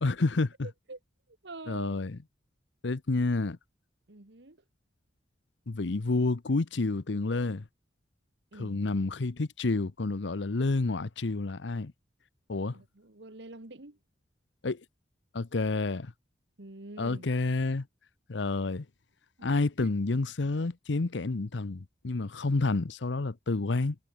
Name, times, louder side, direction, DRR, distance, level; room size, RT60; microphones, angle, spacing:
voice 1, 0.0-0.7 1.7-2.2 2.8-3.6 5.7-7.6 8.5-11.9 12.5-12.8 14.6-14.8 15.3-16.1 17.0-17.9 18.3-18.9 19.4-24.0, left 3 dB, 70° left, 0.8 m, -29 dB
voice 2, 1.4-2.0 4.1-4.6 8.5-8.8 12.7-14.0 16.6-17.3 19.4-19.5 19.8-19.9, right 2 dB, 65° right, 1.8 m, -46 dB
head